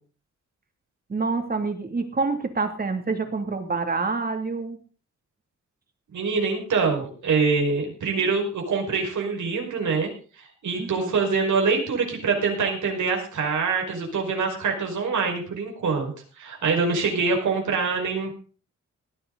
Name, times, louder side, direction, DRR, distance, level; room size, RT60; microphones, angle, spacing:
voice 1, 1.1-4.8 10.7-11.1, right 4 dB, 30° right, 6 dB, 2.7 m, -27 dB
voice 2, 6.1-10.1 10.6-16.1 16.4-18.3, right 4 dB, 85° right, 1 dB, 5.3 m, -24 dB
18.5 x 12.0 x 4.0 m, 0.39 s
wide cardioid pair, 150°, 29 cm